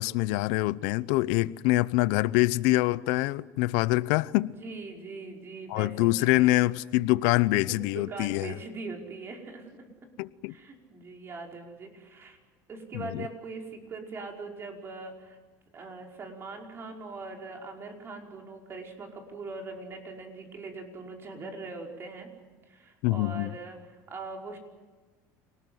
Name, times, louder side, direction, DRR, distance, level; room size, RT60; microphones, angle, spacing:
voice 1, 0.0-4.5 5.7-8.5 10.2-10.5 12.9-13.2 23.0-23.5, left 19 dB, 80° left, 0.8 m, -25 dB
voice 2, 4.4-6.6 7.7-9.9 10.5-12.4 12.7-15.4 15.7-22.3 22.7-23.8 24.1-24.6, right 3 dB, 35° right, 5.3 m, -41 dB
28.5 x 19.5 x 7.9 m
supercardioid pair, 120°, 7 cm